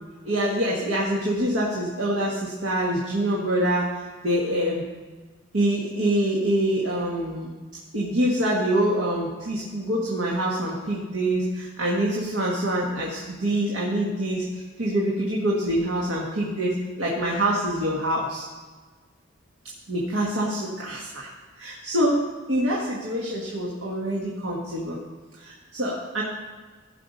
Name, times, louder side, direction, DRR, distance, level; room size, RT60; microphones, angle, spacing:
voice 1, 0.2-3.9 4.2-4.8 5.5-7.5 7.9-18.5 19.9-21.3 21.6-25.0 25.4-26.2, right 1 dB, 85° right, -4 dB, 1.7 m, -25 dB
15.5 x 5.7 x 5.3 m, 1.4 s
head